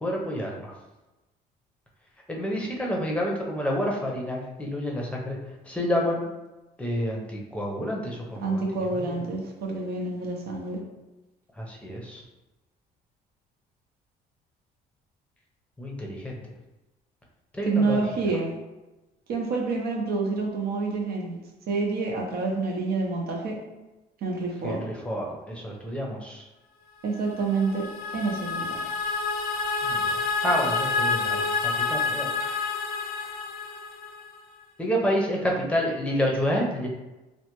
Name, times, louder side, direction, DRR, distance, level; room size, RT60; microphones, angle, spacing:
voice 1, 0.0-0.7 2.3-5.4 5.7-6.2 6.8-8.6 8.9-9.2 11.6-12.2 15.8-16.3 17.5-18.0 24.6-26.4 29.8-30.2 30.4-32.6 34.8-36.9, equal, 5° left, -1 dB, 0.6 m, -29 dB
voice 2, 8.4-10.8 17.6-18.5 19.3-21.4 21.7-23.6 24.2-24.8 27.0-27.9 28.1-28.7, right 3 dB, 65° right, 0 dB, 0.7 m, -27 dB
sound 1, 27.2-34.4, left 4 dB, 65° left, 0.4 m, -28 dB
3.3 x 2.1 x 3.0 m, 1.1 s
cardioid pair, 110°, 17 cm